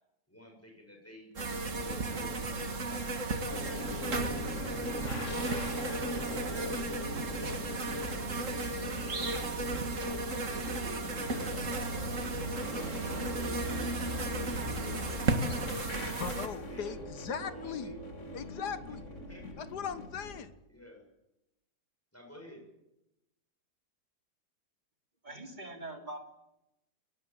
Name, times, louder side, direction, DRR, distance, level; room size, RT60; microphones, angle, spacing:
voice 1, 0.3-2.9 3.6-7.0 7.8-9.0 9.5-12.1 12.7-16.1 16.7-17.0 17.4-18.0 19.1-19.5 20.7-21.0 22.1-22.6, left 1 dB, 10° left, 2 dB, 7.3 m, -51 dB
sound 1, 1.4-16.5, right 2 dB, 50° right, 2.4 m, -34 dB
sound 2, 3.5-20.4, left 1 dB, 50° left, 2.6 m, -42 dB
voice 2, 16.0-17.9 18.3-19.0 19.6-20.5, left 7 dB, 85° left, 12 dB, 1.9 m, -39 dB
voice 3, 25.2-26.2, right 2 dB, 25° right, 4 dB, 3.5 m, -42 dB
22.0 x 19.5 x 9.1 m, 0.89 s
omnidirectional pair, 1.7 m